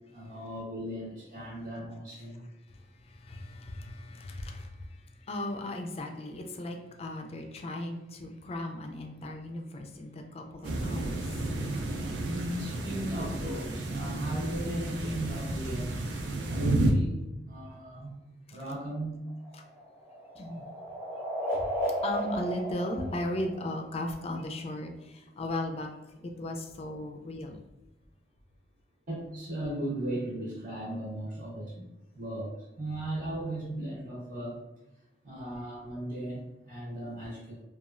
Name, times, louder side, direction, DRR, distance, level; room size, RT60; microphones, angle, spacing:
voice 1, 0.1-2.4 12.3-15.9 16.4-18.2 18.5-19.3 29.1-31.9 32.1-34.6 35.2-37.6, right 1 dB, 55° right, -5 dB, 0.8 m, -36 dB
voice 2, 2.8-11.2 18.5-18.6 19.5-19.6 20.3-20.7 21.6-21.7 22.0-25.9 26.2-27.6, left 1 dB, 35° left, 4 dB, 0.4 m, -37 dB
sound 1, 10.6-16.9, right 2 dB, 80° right, 0.4 m, -32 dB
sound 2, 19.3-24.0, equal, 10° right, 0.9 m, -34 dB
3.0 x 2.3 x 2.4 m, 0.97 s
head